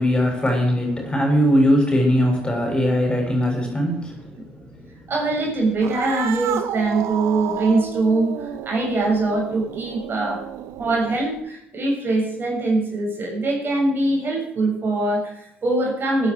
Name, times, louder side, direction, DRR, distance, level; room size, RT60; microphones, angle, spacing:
voice 1, 0.0-4.4 4.6-4.9, equal, 20° left, 2 dB, 7.3 m, -20 dB
voice 2, 5.1-10.4 10.8-16.3, right 2 dB, 45° right, 0 dB, 7.4 m, -22 dB
Cat, 5.7-11.4, right 10 dB, 65° right, 1.3 m, -31 dB
17.5 x 10.5 x 5.0 m, 0.74 s
hypercardioid pair, 50°, 5 cm